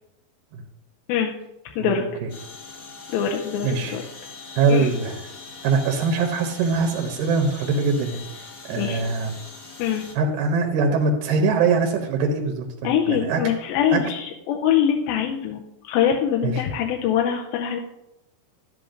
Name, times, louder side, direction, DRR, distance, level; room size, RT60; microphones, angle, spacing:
voice 1, 1.8-2.3 3.6-4.0 4.6-5.2 5.6-8.2 8.7-9.3 10.1-13.4 13.9-14.0 16.4-16.6, right 4 dB, 75° right, 2 dB, 2.2 m, -22 dB
sound 1, 2.3-10.1, left 4 dB, 50° left, 1.2 m, -42 dB
voice 2, 3.1-4.0 4.7-4.9 8.8-9.0 9.8-10.0 12.8-17.8, left 9 dB, 85° left, 1 dB, 2.4 m, -23 dB
11.5 x 7.8 x 2.5 m, 0.89 s
omnidirectional pair, 4.2 m